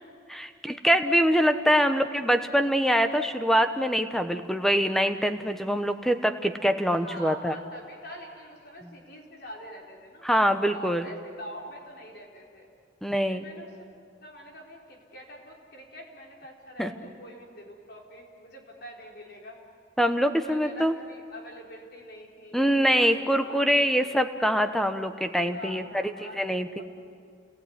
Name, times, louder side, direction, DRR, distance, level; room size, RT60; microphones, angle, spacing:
voice 1, 0.3-7.5 10.2-11.1 13.0-13.4 16.8-16.9 20.0-20.9 22.5-25.8 26.3-26.8, equal, ahead, 8 dB, 1.1 m, -24 dB
voice 2, 1.7-2.0 6.9-10.2 10.7-12.7 13.3-13.9 14.2-19.6 20.1-24.2 25.5-26.8, equal, 55° left, -1 dB, 4.5 m, -45 dB
29.5 x 19.5 x 9.6 m, 2.2 s
head